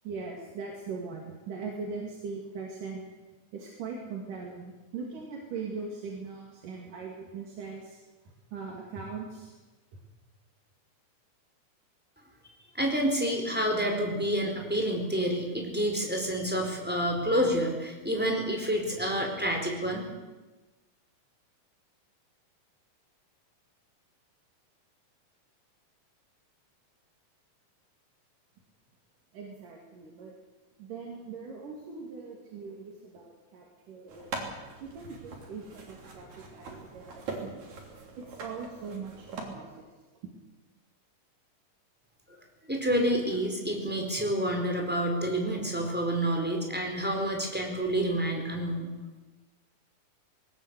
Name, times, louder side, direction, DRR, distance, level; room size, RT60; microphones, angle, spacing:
voice 1, 0.0-3.0 3.5-8.0 8.2-9.5 9.9-10.0 29.3-30.3 30.8-34.3 34.8-37.6 38.2-39.9, right 4 dB, 80° right, -1 dB, 4.1 m, -40 dB
voice 2, 12.7-20.1 42.7-48.9, equal, 5° right, 1 dB, 4.2 m, -28 dB
sound 1, 34.1-39.4, right 3 dB, 65° right, 4.6 m, -42 dB
20.0 x 19.0 x 8.3 m, 1.2 s
omnidirectional pair, 3.7 m